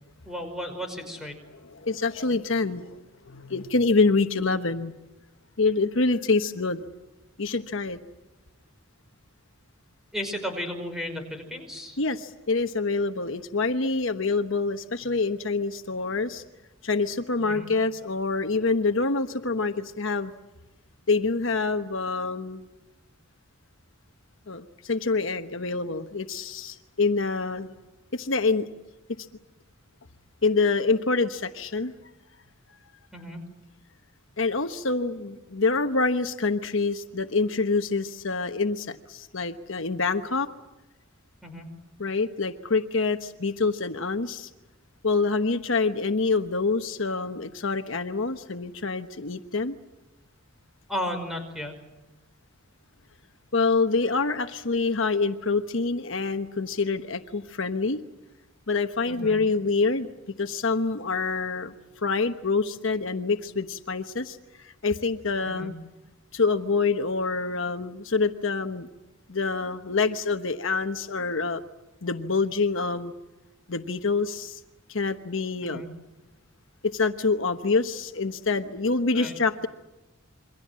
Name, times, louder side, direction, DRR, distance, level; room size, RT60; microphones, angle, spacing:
voice 1, 0.3-1.4 10.1-12.0 17.4-17.7 33.1-33.4 41.4-41.7 50.9-51.8 59.1-59.4 65.4-65.7 75.6-75.9 79.1-79.3, equal, ahead, 5 dB, 5.3 m, -34 dB
voice 2, 1.5-3.0 3.3-4.9 5.6-6.8 7.4-8.0 12.0-16.4 16.8-20.3 21.1-22.7 24.5-27.7 28.1-28.7 30.4-31.9 34.4-40.5 42.0-44.5 45.0-49.8 53.5-58.0 58.7-60.1 60.4-65.7 66.3-68.9 69.3-71.6 72.0-73.1 73.7-74.6 74.9-75.8 76.8-79.7, left 3 dB, 65° left, 8 dB, 1.2 m, -26 dB
28.0 x 24.0 x 7.6 m, 1.1 s
head